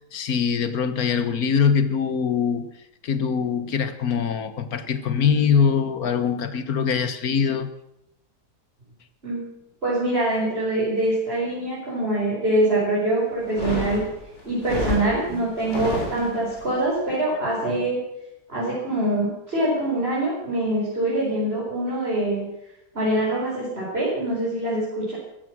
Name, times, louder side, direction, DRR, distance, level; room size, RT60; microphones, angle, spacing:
voice 1, 0.1-2.7 3.0-7.7, left 6 dB, 65° left, 11 dB, 1.7 m, -23 dB
voice 2, 9.8-14.0 14.4-18.0 18.5-22.5 22.9-25.1, right 1 dB, 35° right, -7 dB, 5.6 m, -24 dB
sound 1, 13.4-16.6, left 1 dB, 45° left, 4.3 m, -30 dB
15.0 x 14.5 x 6.1 m, 0.84 s
omnidirectional pair, 1.7 m